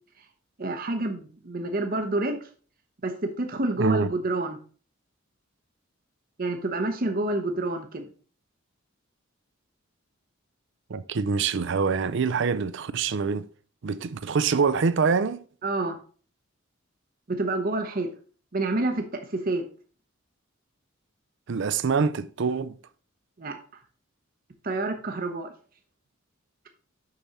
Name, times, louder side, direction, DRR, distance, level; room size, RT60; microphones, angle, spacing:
voice 1, 0.6-2.4 3.0-3.1 3.4-4.6 6.4-8.1 15.6-16.0 17.3-18.1 18.5-19.0 19.5-19.6 23.4-23.6 24.6-25.5, right 2 dB, 45° right, 0.8 m, -28 dB
voice 2, 3.8-4.1 10.9-13.5 13.8-15.4 21.5-22.8, right 5 dB, 60° right, 0.5 m, -25 dB
6.7 x 6.2 x 4.1 m
head